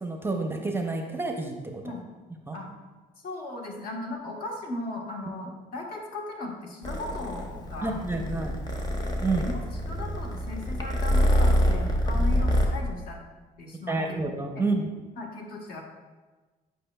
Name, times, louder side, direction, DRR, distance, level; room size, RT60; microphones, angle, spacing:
voice 1, 0.0-1.8 2.5-2.6 7.8-8.5 9.2-9.5 13.9-14.9, right 3 dB, 15° right, 3 dB, 0.6 m, -29 dB
voice 2, 3.2-8.3 9.4-13.2 13.6-14.2 14.5-14.6 15.2-15.8, left 2 dB, 60° left, 0 dB, 1.2 m, -37 dB
Purr, 6.8-12.7, equal, 25° left, 0.8 m, -26 dB
8.5 x 5.1 x 2.2 m, 1.3 s
cardioid pair, 110°, 17 cm